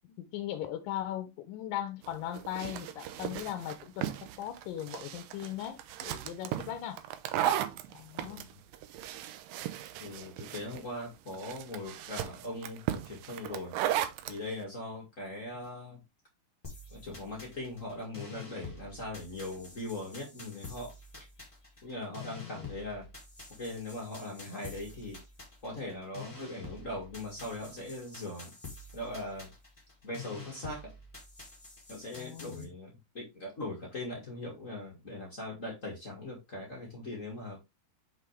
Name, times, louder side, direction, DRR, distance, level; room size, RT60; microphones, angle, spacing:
voice 1, 0.0-7.0 7.9-8.4 22.2-22.7 32.2-32.7, left 11 dB, 75° left, 2.1 m, -39 dB
sound 1, 2.0-14.4, right 12 dB, 85° right, 2.1 m, -36 dB
voice 2, 8.2-8.6 10.0-13.7 14.3-16.0 16.9-21.3 21.8-23.1 23.6-25.2 25.6-28.5 28.9-29.5 30.0-30.9 31.9-37.6, left 1 dB, 35° left, 1.2 m, -40 dB
sound 2, 16.6-32.6, left 3 dB, 15° left, 1.3 m, -48 dB
6.1 x 5.7 x 3.2 m
omnidirectional pair, 4.6 m